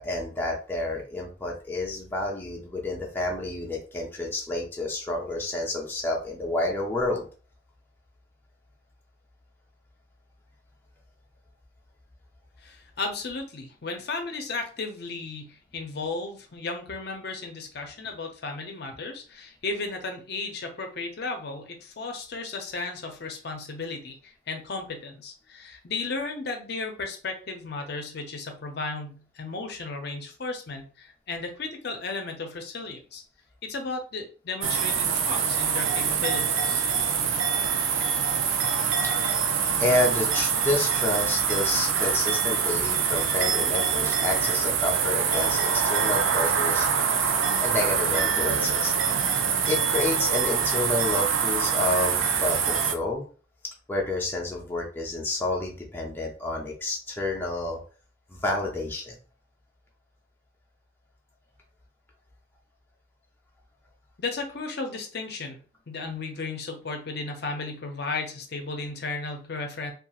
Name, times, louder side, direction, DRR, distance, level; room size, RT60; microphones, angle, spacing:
voice 1, 0.0-7.2 39.0-39.1 39.8-46.9 47.2-48.9 49.2-49.3 49.7-53.2 53.9-57.8 58.3-59.1, left 2 dB, 10° left, -2 dB, 0.5 m, -29 dB
voice 2, 12.6-33.2 33.6-36.8 64.2-65.6 65.9-69.9, left 3 dB, 55° left, 4 dB, 0.5 m, -34 dB
sound 1, 34.6-52.9, right 6 dB, 85° right, 0.4 m, -25 dB
2.8 x 2.4 x 2.3 m, 0.37 s
head